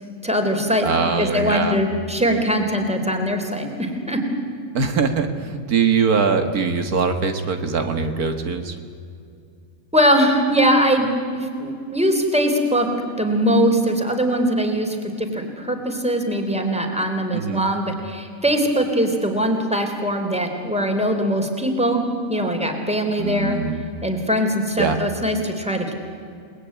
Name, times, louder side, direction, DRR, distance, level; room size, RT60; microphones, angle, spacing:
voice 1, 0.2-0.9 1.2-4.2 9.9-11.1 11.3-12.9 13.2-22.0 22.3-23.6 24.0-25.9, equal, 5° right, 3 dB, 3.5 m, -21 dB
voice 2, 0.8-1.8 4.7-8.7 17.3-17.6 23.2-23.8 24.8-25.0, right 5 dB, 85° right, 6 dB, 2.1 m, -22 dB
29.0 x 20.5 x 9.5 m, 2.4 s
omnidirectional pair, 1.5 m